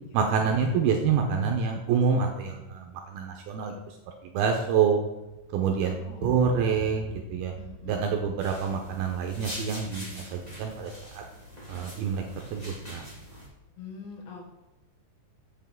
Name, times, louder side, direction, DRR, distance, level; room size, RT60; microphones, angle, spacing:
voice 1, 0.1-2.9 3.1-3.7 4.3-5.0 5.5-6.0 6.2-7.5 7.9-11.2 11.7-12.2 12.5-13.0, right 6 dB, 80° right, 3 dB, 2.3 m, -26 dB
sound 1, 5.4-13.6, left 1 dB, 60° left, 3.6 m, -47 dB
voice 2, 5.8-6.5 7.6-8.1 13.8-14.6, left 5 dB, 85° left, 0 dB, 4.0 m, -45 dB
sound 2, 8.4-13.5, equal, 40° left, 0.5 m, -43 dB
8.0 x 8.0 x 3.6 m, 1.0 s
omnidirectional pair, 5.1 m